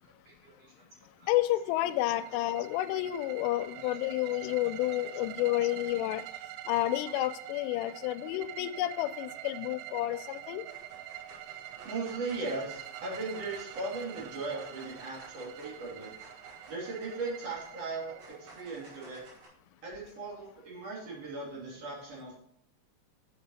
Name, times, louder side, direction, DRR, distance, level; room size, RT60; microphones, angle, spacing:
voice 1, 0.0-0.9 1.2-1.3 3.8-3.9 5.4-5.5 7.1-7.2 7.9-8.0 11.8-16.1 16.7-19.2 19.8-22.4, right 3 dB, 40° right, -4 dB, 2.9 m, -38 dB
voice 2, 1.3-6.2 6.7-10.6, left 15 dB, 85° left, 11 dB, 3.1 m, -30 dB
sound 1, 1.5-19.4, right 13 dB, 85° right, 2.7 m, -46 dB
sound 2, 9.9-10.3 10.6-19.5, right 2 dB, 60° right, 4.9 m, -55 dB
8.6 x 7.0 x 4.1 m, 0.69 s
omnidirectional pair, 5.6 m